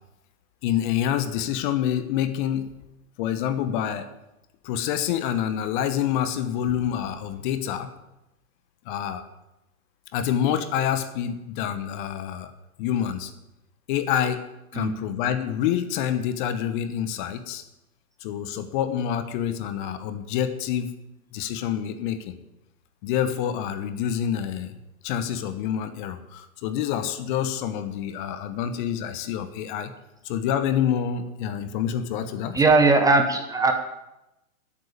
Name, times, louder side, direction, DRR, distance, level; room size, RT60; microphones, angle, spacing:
voice 1, 0.6-2.7 3.2-4.1 4.6-7.9 8.9-9.2 10.1-12.5 12.8-13.3 13.9-14.4 14.7-17.6 18.2-20.9 21.3-22.3 23.0-24.8 25.0-29.9 30.2-32.6, left 9 dB, 35° left, 10 dB, 1.1 m, -27 dB
voice 2, 32.5-33.7, right 3 dB, 10° right, 5 dB, 1.0 m, -19 dB
11.5 x 8.5 x 8.5 m, 0.93 s
figure-of-eight pair, 115°, 44 cm